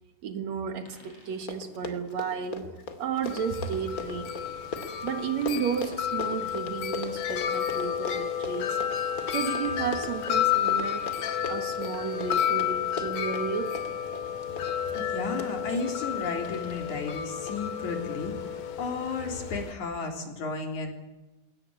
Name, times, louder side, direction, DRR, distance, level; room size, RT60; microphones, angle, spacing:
voice 1, 0.2-2.7 3.0-4.5 5.0-8.8 9.3-11.1 11.5-13.8, right 7 dB, 65° right, 2.7 m, -33 dB
sound 1, 0.9-1.4 2.9-3.1 5.4-6.2 8.6-8.8 10.9-11.5 13.5-13.6 13.9-14.0 16.4-17.1 18.8-19.1, left 1 dB, 50° left, 7.0 m, -54 dB
Run, 1.0-1.1 1.3-16.3 16.9-17.2 17.5-17.6, left 4 dB, 30° left, 2.4 m, -39 dB
Wind chime, 3.2-19.7, left 9 dB, 85° left, 3.4 m, -31 dB
voice 2, 14.9-18.3 18.8-20.9, left 4 dB, 65° left, 4.8 m, -33 dB
21.5 x 18.5 x 9.6 m
omnidirectional pair, 3.6 m